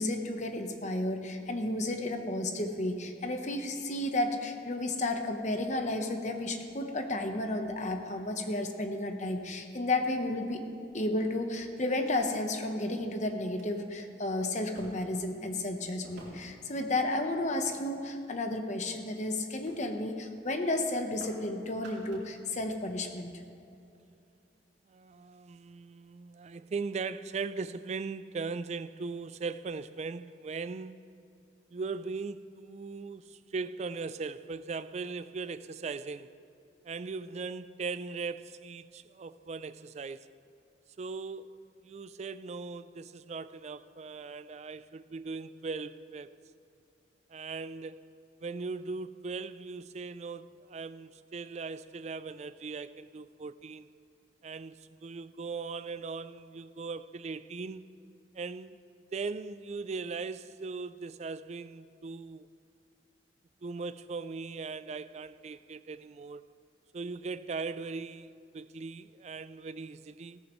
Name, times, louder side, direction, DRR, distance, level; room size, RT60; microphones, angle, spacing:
voice 1, 0.0-10.6 10.9-23.3, left 2 dB, 40° left, 1.0 m, -32 dB
sound 1, 8.1-9.0 9.9-10.0 10.6-11.3 12.2-12.3 13.0-13.1 13.4-13.7 14.7-15.3 16.0-16.6 17.3-18.2 18.7-19.0 19.7-19.8 20.1-20.3 20.6-21.5 21.7-22.4 22.7-22.8, right 1 dB, 65° right, 3.6 m, -53 dB
voice 2, 24.9-31.0 31.7-36.3 36.8-40.3 41.0-41.6 41.8-46.3 47.3-48.0 48.4-53.9 54.4-57.8 58.3-58.8 59.1-62.5 63.6-66.4 66.9-70.4, right 4 dB, 35° right, 0.3 m, -39 dB
16.5 x 14.0 x 3.1 m
head